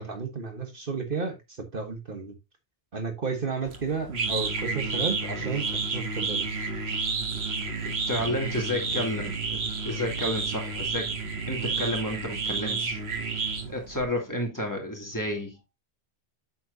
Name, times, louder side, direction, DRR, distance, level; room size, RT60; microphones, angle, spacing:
voice 1, 0.0-2.4 2.9-6.5, right 5 dB, 55° right, 1.5 m, -32 dB
sound 1, 3.7-14.0, right 4 dB, 75° right, 1.7 m, -31 dB
voice 2, 7.8-11.1 11.5-13.0 13.7-15.7, equal, 15° left, 2.8 m, -31 dB
8.2 x 7.5 x 2.7 m
omnidirectional pair, 1.1 m